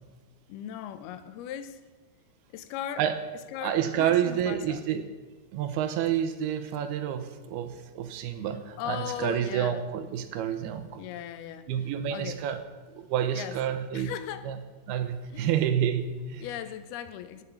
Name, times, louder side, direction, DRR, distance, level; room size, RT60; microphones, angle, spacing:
voice 1, 0.5-1.8 2.5-3.0 3.5-4.8 8.8-9.8 11.0-11.7 12.1-12.5 13.3-13.6 13.9-14.5 15.3-15.5 16.4-17.4, left 10 dB, 80° left, 12 dB, 2.6 m, -37 dB
voice 2, 3.6-5.1 5.5-11.0 11.7-12.6 12.9-14.1 14.5-14.6 14.9-16.5, right 9 dB, 85° right, 10 dB, 2.9 m, -29 dB
17.5 x 6.8 x 7.2 m, 1.3 s
omnidirectional pair, 4.5 m